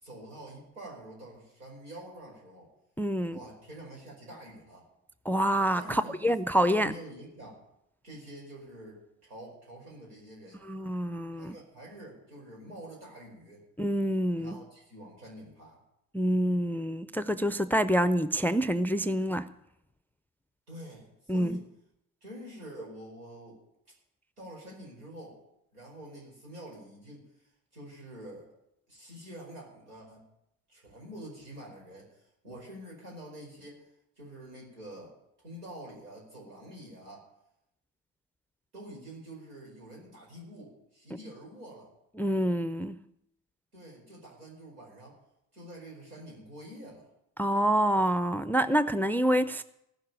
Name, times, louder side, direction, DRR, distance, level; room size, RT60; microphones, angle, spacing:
voice 1, 0.0-2.7 3.3-4.9 5.8-7.6 8.0-10.6 11.4-13.6 14.3-15.8 20.7-21.7 22.2-23.6 24.4-25.4 25.7-28.5 28.9-30.2 30.7-33.9 34.2-37.2 38.7-41.9 43.7-45.2 45.5-47.1 49.4-49.5, right 1 dB, 85° right, -2 dB, 5.0 m, -47 dB
voice 2, 3.0-3.4 5.3-6.9 10.6-11.5 13.8-14.6 16.1-19.5 21.3-21.6 42.2-43.0 47.4-49.6, equal, 5° left, 13 dB, 0.5 m, -27 dB
15.5 x 6.6 x 9.8 m, 0.81 s
hypercardioid pair, 55°, 45 cm